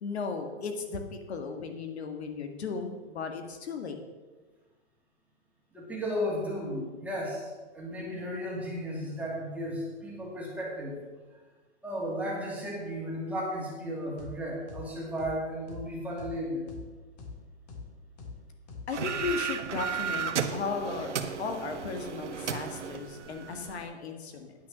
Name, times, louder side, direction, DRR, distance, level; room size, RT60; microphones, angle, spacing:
voice 1, 0.0-4.0 18.9-24.5, left 4 dB, 65° left, 5 dB, 1.7 m, -36 dB
voice 2, 5.7-11.0 11.8-16.7 23.8-24.1, equal, 5° right, -5 dB, 2.6 m, -34 dB
sound 1, 14.2-14.3 14.7-14.8 15.2-15.3 15.7-15.8 16.2-16.3 16.7-16.8 17.2-17.3 17.7-17.8 18.2-18.3 18.7-18.8 19.2-19.3, left 4 dB, 35° left, 2.1 m, -42 dB
sound 2, 18.9-23.8, right 7 dB, 85° right, 1.2 m, -34 dB
9.6 x 9.4 x 6.2 m, 1.3 s
hypercardioid pair, 155°, 35 cm